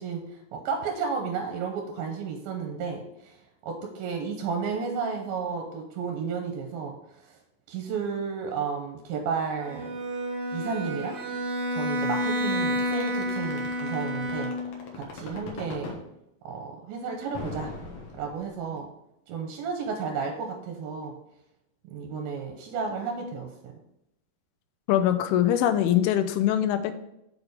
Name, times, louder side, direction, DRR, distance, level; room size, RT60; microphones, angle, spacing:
voice 1, 0.0-3.4 3.6-7.0 7.3-7.4 7.7-10.0 10.5-11.2 11.7-14.5 14.9-16.0 16.4-17.7 18.2-18.9 19.3-21.2 21.8-23.5, right 5 dB, 80° right, 3 dB, 2.6 m, -32 dB
Bowed string instrument, 9.6-14.9, equal, 60° right, 3.2 m, -30 dB
sound 1, 12.8-16.0 17.3-18.7, left 4 dB, 65° left, 1.9 m, -39 dB
voice 2, 24.9-26.9, left 11 dB, 85° left, 9 dB, 2.5 m, -23 dB
6.5 x 4.9 x 4.9 m, 0.82 s
omnidirectional pair, 4.5 m